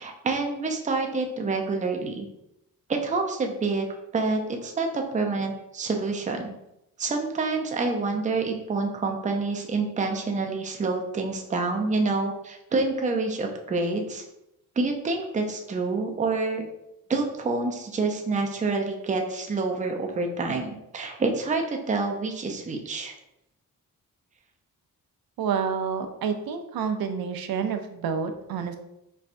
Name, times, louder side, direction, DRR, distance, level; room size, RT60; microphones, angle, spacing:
voice 1, 0.0-2.3 2.9-3.9 4.1-6.5 7.0-14.2 14.8-16.6 17.1-23.1, right 3 dB, 20° right, 3 dB, 0.4 m, -27 dB
voice 2, 25.4-28.8, right 6 dB, 80° right, 7 dB, 0.5 m, -28 dB
4.2 x 2.2 x 2.5 m, 0.83 s
wide cardioid pair, 105°, 36 cm